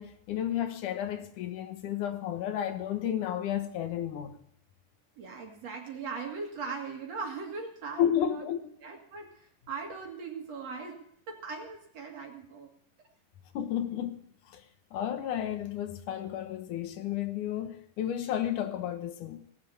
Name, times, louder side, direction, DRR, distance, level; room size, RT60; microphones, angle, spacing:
voice 1, 0.0-4.3 8.0-8.6 13.5-14.2 14.5-14.6 14.9-19.4, left 10 dB, 70° left, 2.7 m, -32 dB
voice 2, 5.2-8.4 8.8-12.7, right 4 dB, 55° right, 2.9 m, -40 dB
19.0 x 7.7 x 8.5 m
omnidirectional pair, 3.8 m